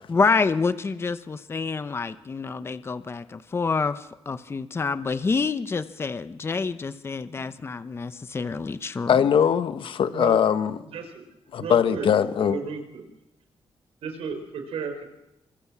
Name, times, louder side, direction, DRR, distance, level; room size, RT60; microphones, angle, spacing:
voice 1, 0.1-9.3, left 4 dB, 25° left, 1.0 m, -27 dB
voice 2, 9.1-10.8 11.5-12.6, left 8 dB, 60° left, 1.4 m, -21 dB
voice 3, 10.9-11.2 11.6-12.1 12.4-13.1 14.0-15.0, right 5 dB, 85° right, 4.9 m, -34 dB
29.0 x 24.5 x 7.5 m
wide cardioid pair, 170°, 10 cm